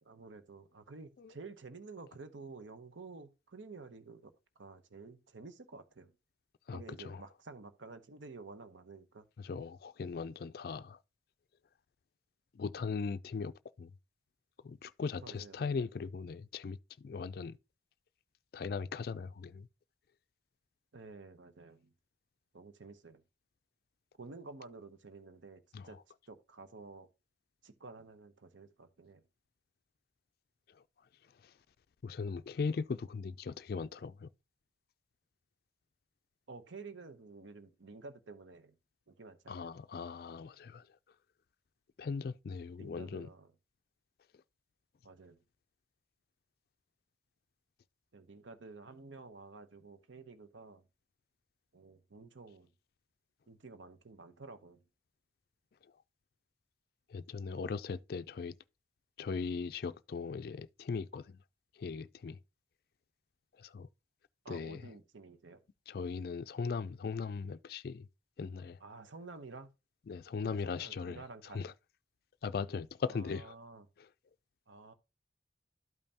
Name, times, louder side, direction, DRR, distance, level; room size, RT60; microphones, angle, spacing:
voice 1, 0.0-6.1 6.7-9.2 15.2-15.9 20.9-21.9 22.5-23.2 24.2-26.0 26.3-27.1 27.6-29.2 36.5-38.8 39.1-39.7 42.8-43.5 45.0-45.4 48.1-50.8 51.7-52.7 53.5-54.8 64.4-65.6 68.8-69.7 70.5-71.7 73.0-73.9 74.7-74.9, right 3 dB, 85° right, 0.9 m, -51 dB
voice 2, 6.7-7.2 9.4-11.0 12.5-13.9 14.6-17.6 18.5-19.7 25.7-26.0 32.0-34.3 39.5-40.8 42.0-43.3 57.1-58.5 59.2-61.4 61.8-62.4 63.6-63.9 64.5-64.9 65.9-68.1 68.4-68.8 70.1-71.7 72.4-73.5 74.0-74.1, left 5 dB, 55° left, 0.3 m, -39 dB
12.5 x 5.4 x 2.8 m
head